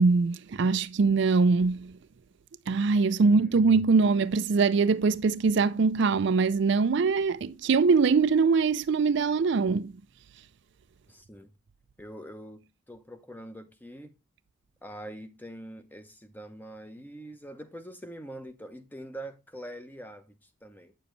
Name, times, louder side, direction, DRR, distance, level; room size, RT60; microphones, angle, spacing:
voice 1, 0.0-1.9 2.7-9.9, right 4 dB, 60° right, 0.4 m, -23 dB
voice 2, 3.2-3.6 11.1-11.5 12.0-14.1 14.8-20.9, right 1 dB, 10° left, 0.8 m, -44 dB
9.1 x 6.9 x 3.2 m
head